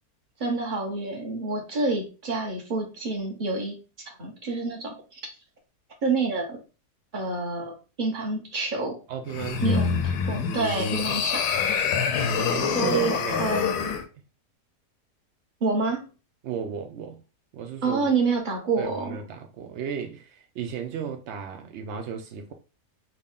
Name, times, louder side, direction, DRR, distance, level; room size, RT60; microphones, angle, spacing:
voice 1, 0.4-3.8 4.2-5.2 6.0-6.6 7.1-9.0 9.6-9.9 10.3-11.4 12.4-13.1 13.4-14.0 15.6-16.0 17.8-19.2, right 3 dB, 35° right, 1.0 m, -28 dB
voice 2, 9.1-9.9 12.5-14.0 16.4-17.2 17.5-18.1 18.8-22.5, right 7 dB, 85° right, 0.6 m, -35 dB
sound 1, 9.3-14.0, left 6 dB, 85° left, 1.2 m, -26 dB
3.6 x 2.2 x 3.6 m
omnidirectional pair, 1.7 m